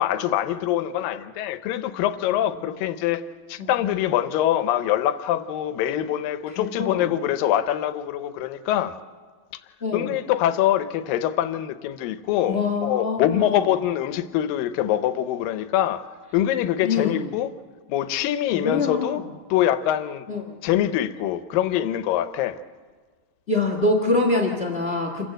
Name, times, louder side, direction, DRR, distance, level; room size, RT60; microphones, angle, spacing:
voice 1, 0.0-3.2 3.5-8.9 9.9-16.0 16.3-17.5 17.9-19.2 19.5-20.3 20.6-22.6, left 12 dB, 85° left, 2.6 m, -24 dB
voice 2, 6.5-7.1 9.8-10.1 12.4-13.7 16.8-17.3 18.5-19.2 20.3-20.5 23.5-25.3, left 3 dB, 55° left, 0.6 m, -25 dB
27.5 x 15.0 x 7.7 m
omnidirectional pair, 4.0 m